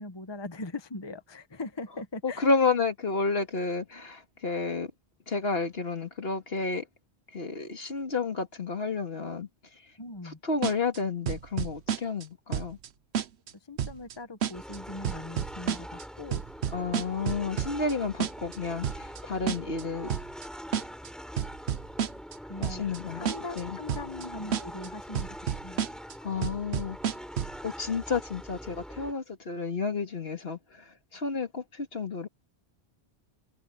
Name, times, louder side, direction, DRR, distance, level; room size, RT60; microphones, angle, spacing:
voice 1, 0.0-2.5 10.0-10.4 13.6-16.4 22.5-22.8 23.1-25.4 25.6-25.8, left 2 dB, 25° left, 1.1 m, -40 dB
voice 2, 2.2-4.9 5.3-6.9 7.3-9.5 10.2-12.8 16.7-20.2 22.6-23.3 23.6-23.8 26.2-27.0 27.6-32.3, left 4 dB, 65° left, 2.3 m, -31 dB
sound 1, 10.6-11.0 11.3-12.2 12.5-12.9 13.1-13.5 13.8-14.1 14.4-14.8 15.0-16.0 16.3-17.9 18.2-18.6 18.8-19.2 19.5-19.8 20.1-20.5 20.7-21.1 21.4-22.3 22.6-23.0 23.3-23.6 23.9-24.2 24.5-24.9 25.1-26.1 26.4-27.6, right 9 dB, 80° right, 1.1 m, -30 dB
sound 2, 14.5-29.1, equal, ahead, 7.7 m, -43 dB
omnidirectional pair, 1.1 m